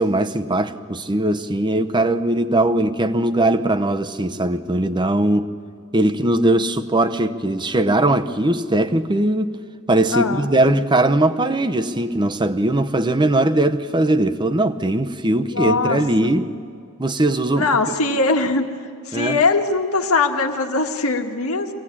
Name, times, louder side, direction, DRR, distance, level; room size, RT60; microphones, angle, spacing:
voice 1, 0.0-5.5 5.9-9.6 9.9-16.5 17.0-17.7 19.1-19.4, right 1 dB, 20° right, 0.7 m, -20 dB
voice 2, 10.1-10.5 15.3-16.0 17.6-18.7 19.0-21.7, left 3 dB, 80° left, 1.6 m, -21 dB
24.5 x 18.0 x 8.7 m
head